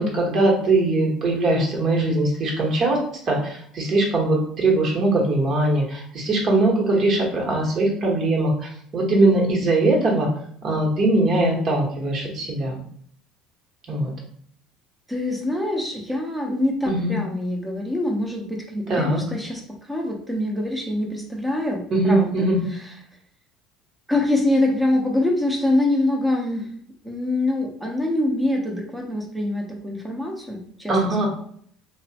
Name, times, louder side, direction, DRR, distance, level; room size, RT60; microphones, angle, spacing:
voice 1, 0.0-3.0 3.3-8.5 8.9-10.3 10.6-12.8 13.9-14.1 16.9-17.2 18.9-19.2 21.9-22.6 30.9-31.3, right 2 dB, 45° right, -1 dB, 1.0 m, -21 dB
voice 2, 15.1-22.9 24.1-26.7 27.0-31.3, left 1 dB, 5° right, 1 dB, 0.7 m, -25 dB
2.9 x 2.0 x 2.8 m, 0.62 s
supercardioid pair, 95°, 0 cm